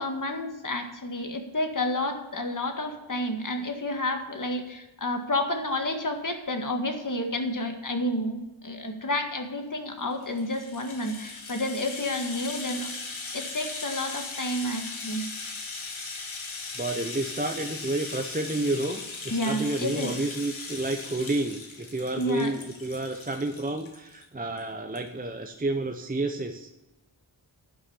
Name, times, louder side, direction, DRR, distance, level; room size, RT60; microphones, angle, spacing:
voice 1, 0.0-12.9 13.3-15.2 19.3-20.1 22.2-22.5, left 1 dB, 40° left, 4 dB, 1.8 m, -30 dB
Rattle (instrument), 10.1-24.2 24.6-24.7 24.9-25.1, left 3 dB, 80° left, 1.8 m, -38 dB
voice 2, 16.7-26.7, right 2 dB, 20° right, 5 dB, 0.7 m, -30 dB
11.0 x 6.4 x 7.1 m, 1.0 s
wide cardioid pair, 80°, 47 cm